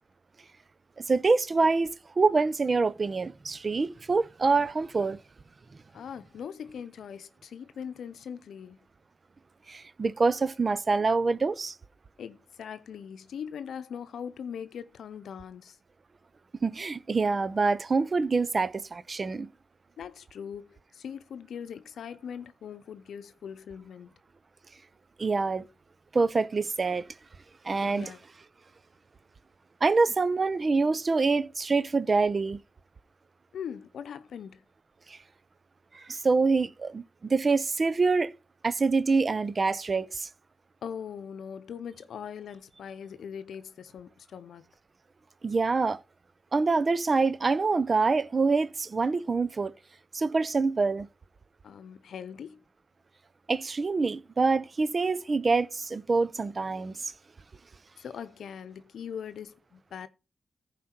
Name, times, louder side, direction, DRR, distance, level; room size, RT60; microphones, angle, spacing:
voice 1, 1.1-5.2 9.7-11.8 16.6-19.5 25.2-25.6 26.1-27.1 27.6-28.1 29.8-32.6 35.1-35.2 35.9-38.3 38.6-40.3 45.4-46.0 46.5-49.8 50.1-51.1 53.5-57.1, right 4 dB, 50° right, 0.7 m, -26 dB
voice 2, 5.9-8.8 12.2-15.8 20.0-24.1 27.8-28.2 33.5-34.6 40.8-44.7 51.6-52.6 58.0-60.1, left 7 dB, 85° left, 0.7 m, -41 dB
15.0 x 5.0 x 4.4 m
cardioid pair, 45°, 0 cm